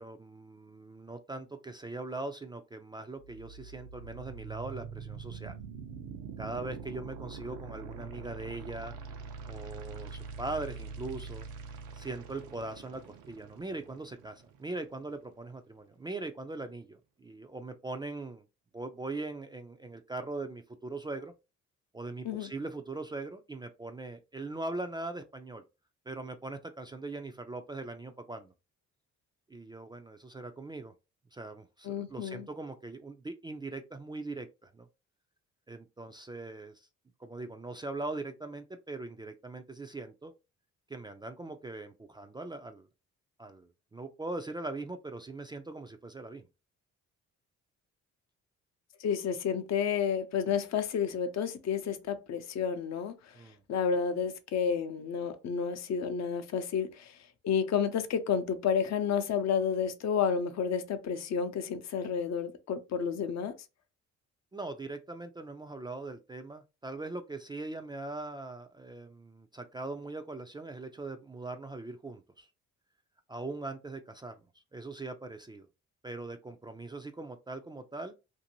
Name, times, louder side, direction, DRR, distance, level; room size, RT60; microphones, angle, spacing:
voice 1, 0.0-5.6 6.4-9.0 9.5-11.4 11.9-18.4 18.7-21.3 21.9-25.6 26.1-28.5 29.5-30.9 31.3-34.9 35.7-36.9 37.2-40.3 40.9-42.9 43.4-46.4 53.3-53.6 64.5-72.5 73.3-74.5 74.7-75.7 76.0-78.1, right 2 dB, 15° right, 0.3 m, -41 dB
sound 1, 3.2-15.2, right 5 dB, 85° right, 0.6 m, -44 dB
voice 2, 31.8-32.5 49.0-53.4 53.7-57.2 57.4-63.6, left 7 dB, 60° left, 0.6 m, -31 dB
2.6 x 2.5 x 2.8 m
cardioid pair, 90°, 30 cm